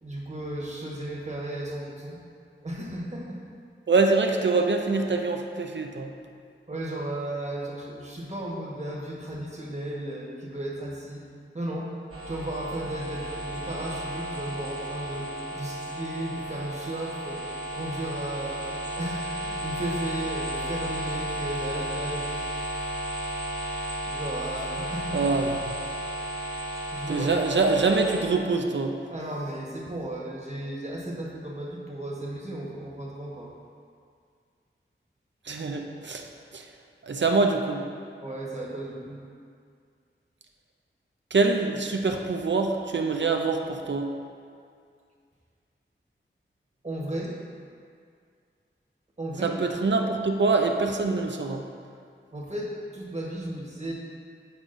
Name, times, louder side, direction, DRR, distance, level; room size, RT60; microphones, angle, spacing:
voice 1, 0.0-2.2 2.6-3.4 6.7-11.2 11.5-11.9 12.3-15.3 15.5-17.4 17.7-18.6 19.0-22.2 24.0-25.2 26.9-27.3 29.1-33.5 38.2-39.2 46.8-47.4 49.2-49.5 52.3-53.9, right 1 dB, 35° right, -3 dB, 1.2 m, -34 dB
voice 2, 3.9-6.1 25.1-25.8 27.1-28.9 35.5-36.3 36.5-36.7 37.0-37.8 41.3-44.1 49.4-51.6, right 3 dB, 60° right, 3 dB, 0.6 m, -25 dB
sound 1, 12.1-28.2, right 1 dB, 85° right, 1.1 m, -33 dB
8.3 x 4.9 x 2.6 m, 2.2 s
wide cardioid pair, 50°, 21 cm